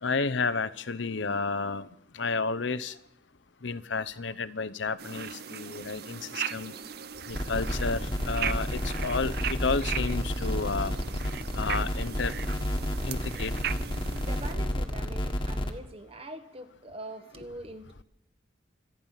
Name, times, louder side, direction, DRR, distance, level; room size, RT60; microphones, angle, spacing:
voice 1, 0.0-1.9 2.1-3.0 3.6-6.7 7.3-10.9 11.5-12.3 13.0-13.5, left 4 dB, 70° left, 16 dB, 0.8 m, -31 dB
sound 1, 5.0-14.5, right 8 dB, 55° right, 0.7 m, -38 dB
sound 2, 7.3-15.7, equal, 25° left, 1.5 m, -31 dB
voice 2, 14.2-18.0, right 1 dB, 30° right, 8 dB, 1.4 m, -43 dB
26.0 x 9.4 x 5.7 m, 0.82 s
head